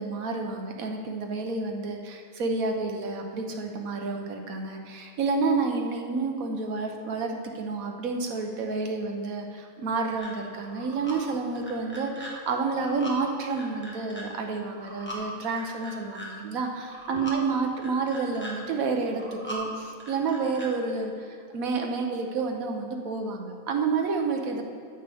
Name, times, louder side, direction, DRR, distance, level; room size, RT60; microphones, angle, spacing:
voice 1, 0.0-24.6, right 4 dB, 85° right, 3 dB, 1.3 m, -29 dB
sound 1, 10.2-10.3 10.6-11.1 11.6-12.3 12.6-13.2 13.5-14.2 14.7-15.2 15.5-16.3 16.8-17.4 17.8-18.5 19.0-19.6 20.0-20.7, equal, 10° left, 1.3 m, -40 dB
13.0 x 6.8 x 3.5 m, 2.3 s
omnidirectional pair, 1.4 m